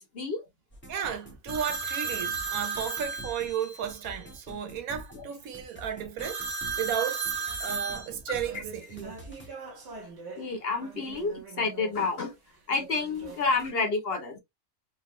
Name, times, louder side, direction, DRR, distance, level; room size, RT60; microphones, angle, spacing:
sound 1, 0.7-9.5, equal, 10° left, 0.8 m, -47 dB
voice 1, 0.9-7.3 7.6-9.2, right 9 dB, 85° right, 1.2 m, -34 dB
sound 2, 1.5-3.9 6.2-10.4 10.8-11.9 12.8-13.7, right 5 dB, 55° right, 1.4 m, -36 dB
voice 2, 10.4-12.3 12.7-14.4, left 4 dB, 55° left, 0.8 m, -29 dB
3.9 x 2.1 x 2.9 m
omnidirectional pair, 1.5 m